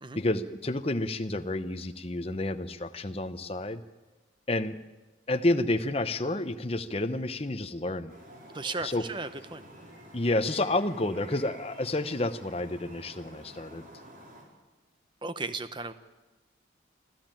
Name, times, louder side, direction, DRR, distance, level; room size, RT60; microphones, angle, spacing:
voice 1, 0.2-3.8 4.5-4.8 5.3-8.1 8.8-9.1 10.1-13.9, left 2 dB, 30° left, 9 dB, 0.9 m, -30 dB
sound 1, 8.1-14.4, equal, 45° right, 5.1 m, -50 dB
voice 2, 8.5-9.7 15.2-15.9, right 3 dB, 25° right, 11 dB, 0.9 m, -35 dB
25.5 x 14.0 x 9.1 m, 1.2 s
head